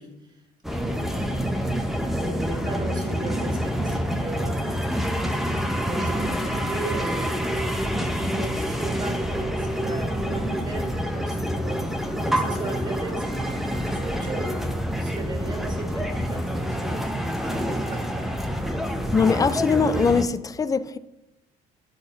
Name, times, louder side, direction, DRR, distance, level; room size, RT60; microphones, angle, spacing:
voice 1, 0.0-4.6 5.7-7.5 8.0-14.6 15.0-17.0 17.4-18.1, right 3 dB, 25° right, 1.9 m, -37 dB
sound 1, 0.6-20.2, equal, ahead, 0.7 m, -27 dB
voice 2, 19.1-21.0, left 5 dB, 20° left, 0.4 m, -21 dB
10.5 x 4.1 x 3.9 m
cardioid pair, 110°, 17 cm